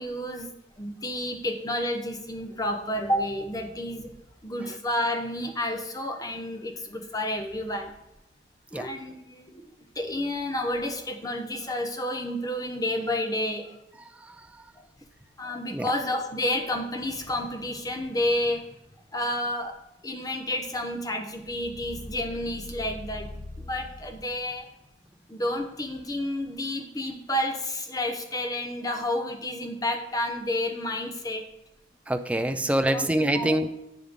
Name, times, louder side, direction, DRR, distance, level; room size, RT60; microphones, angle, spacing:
voice 1, 0.0-4.1 4.4-7.9 8.7-9.7 9.9-13.8 14.8-14.9 15.4-18.7 19.1-19.8 20.0-24.7 25.3-31.5 32.9-33.1 33.3-33.6, left 1 dB, 20° left, 4 dB, 0.9 m, -30 dB
voice 2, 14.1-14.7 15.7-15.9 32.1-33.7, right 1 dB, 5° right, 8 dB, 0.4 m, -26 dB
10.5 x 7.6 x 3.7 m, 0.87 s
head